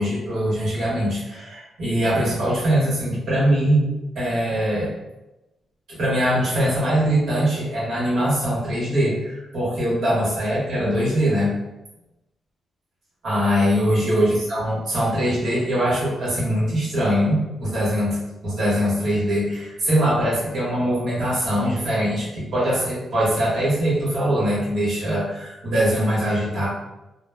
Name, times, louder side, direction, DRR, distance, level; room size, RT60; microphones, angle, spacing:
voice 1, 0.0-3.9 4.1-4.9 5.9-11.5 13.2-26.7, equal, 70° right, -7 dB, 1.3 m, -22 dB
2.9 x 2.1 x 2.2 m, 0.99 s
cardioid pair, 105°, 0 cm